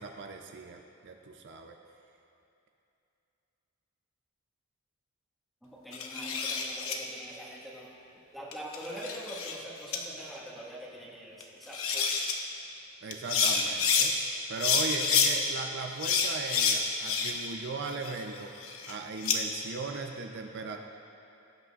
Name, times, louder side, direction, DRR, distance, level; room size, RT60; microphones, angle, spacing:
voice 1, 0.0-1.8 13.0-14.2 14.5-18.5 18.9-20.8, right 4 dB, 60° right, 3 dB, 0.6 m, -38 dB
voice 2, 5.6-7.9 8.3-12.4, right 1 dB, ahead, -6 dB, 1.6 m, -44 dB
sound 1, 5.9-7.0 8.5-9.6 9.9-10.0 11.4-11.5 11.7-12.3 13.1-14.1 14.6-15.3 16.0-17.5 17.9-19.4, left 5 dB, 80° left, 0.9 m, -28 dB
18.5 x 8.2 x 2.4 m, 2.7 s
head